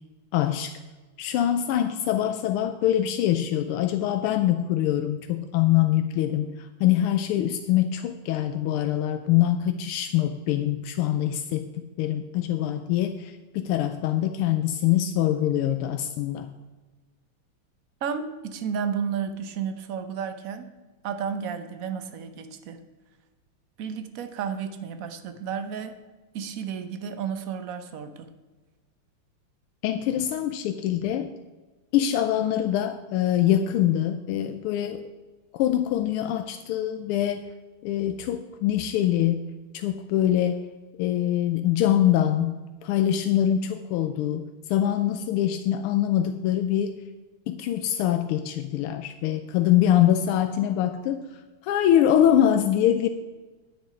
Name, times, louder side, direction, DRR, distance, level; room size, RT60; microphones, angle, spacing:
voice 1, 0.3-0.7 1.2-11.7 12.0-16.5 29.8-31.3 31.9-35.1 35.5-37.5 37.8-39.5 39.7-40.6 41.0-47.0 47.5-53.1, left 11 dB, 85° left, 8 dB, 1.5 m, -24 dB
voice 2, 18.0-20.7 21.0-22.8 23.8-26.0 26.3-28.3, right 7 dB, 55° right, 9 dB, 1.0 m, -32 dB
9.7 x 9.3 x 5.0 m, 1.2 s
omnidirectional pair, 2.4 m